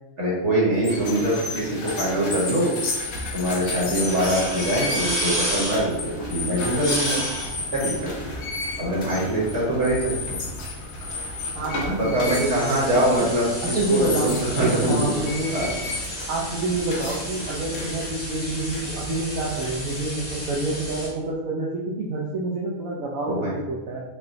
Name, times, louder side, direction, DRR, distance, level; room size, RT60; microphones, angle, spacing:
voice 1, 0.2-2.7 3.3-7.2 7.7-7.9 8.8-10.4 11.9-15.2 15.5-15.7 23.3-23.5, right 1 dB, 55° right, -6 dB, 1.3 m, -23 dB
sound 1, 0.7-20.0, left 3 dB, 55° left, 0.8 m, -33 dB
sound 2, 3.1-21.1, equal, 20° left, 1.0 m, -33 dB
voice 2, 11.5-13.3 13.6-15.6 16.3-24.0, right 2 dB, 70° right, -4 dB, 0.9 m, -28 dB
5.7 x 2.2 x 2.6 m, 1.0 s
omnidirectional pair, 1.6 m